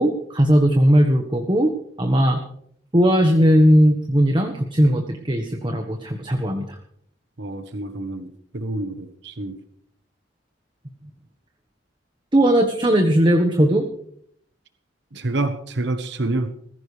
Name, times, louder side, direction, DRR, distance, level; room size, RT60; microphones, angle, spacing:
voice 1, 0.0-1.7 2.0-2.4 2.9-6.7 12.3-13.9, equal, 25° right, 4 dB, 1.3 m, -18 dB
voice 2, 7.4-9.6 15.1-16.5, right 2 dB, 70° right, 8 dB, 1.2 m, -27 dB
19.5 x 15.5 x 3.3 m, 0.66 s
head